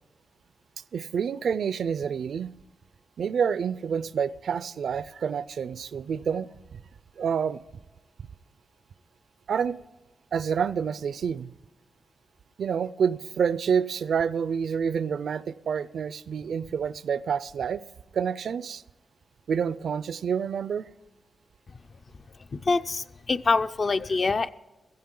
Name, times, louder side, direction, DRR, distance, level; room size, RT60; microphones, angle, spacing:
voice 1, 0.9-2.5 3.2-6.5 6.7-6.8 7.2-7.6 9.5-9.8 10.3-11.5 12.6-17.8 18.1-18.8 19.5-20.9, right 7 dB, 65° right, 0.4 m, -28 dB
voice 2, 22.5-24.5, left 4 dB, 35° left, 0.4 m, -25 dB
16.0 x 14.5 x 3.8 m
wide cardioid pair, 160°, 0 cm